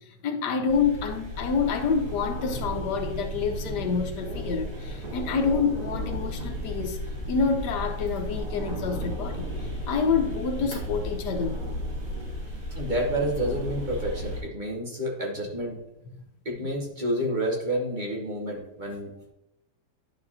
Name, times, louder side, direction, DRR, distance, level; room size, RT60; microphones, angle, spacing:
voice 1, 0.2-7.0 7.3-11.6 16.6-16.7, left 5 dB, 75° left, 5 dB, 1.4 m, -27 dB
sound 1, 0.7-14.4, equal, 85° right, 3.5 m, -34 dB
voice 2, 12.7-15.8 16.4-19.3, equal, 30° right, -1 dB, 1.1 m, -29 dB
10.5 x 4.7 x 2.7 m, 0.89 s
omnidirectional pair, 1.8 m